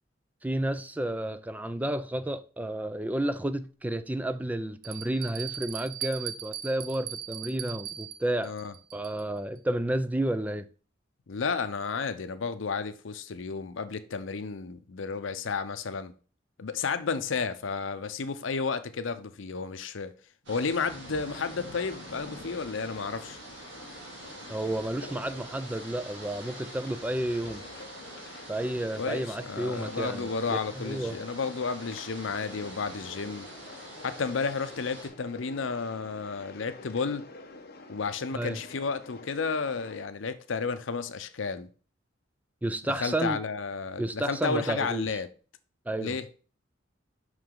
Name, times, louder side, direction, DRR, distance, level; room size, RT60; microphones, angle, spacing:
voice 1, 0.4-8.5 8.9-10.6 24.5-27.6 28.5-31.2 38.3-38.6 42.6-43.4 44.0-45.2 45.9-46.2, right 1 dB, 10° right, 0.4 m, -31 dB
Bell, 3.2-3.3 4.0-4.1 4.8-9.4, right 10 dB, 50° right, 0.6 m, -39 dB
voice 2, 8.4-8.7 11.3-16.1 16.6-20.1 20.5-23.4 29.0-33.5 34.0-37.2 37.9-41.7 42.9-45.3 46.0-46.2, left 5 dB, 85° left, 0.6 m, -32 dB
sound 1, 20.5-35.1, right 1 dB, 65° right, 2.4 m, -45 dB
sound 2, 21.3-40.0, left 2 dB, 55° left, 1.0 m, -48 dB
5.8 x 4.9 x 3.7 m
head